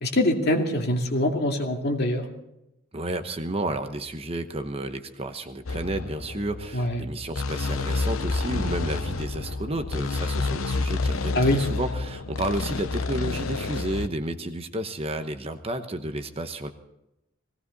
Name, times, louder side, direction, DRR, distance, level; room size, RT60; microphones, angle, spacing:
voice 1, 0.0-2.2 6.7-7.0 11.3-11.6, left 1 dB, 50° left, 2 dB, 2.4 m, -23 dB
voice 2, 2.9-16.7, right 1 dB, 30° right, 8 dB, 1.0 m, -31 dB
sound 1, 5.7-14.1, left 3 dB, 85° left, 0.9 m, -29 dB
19.0 x 17.5 x 4.1 m, 0.86 s
head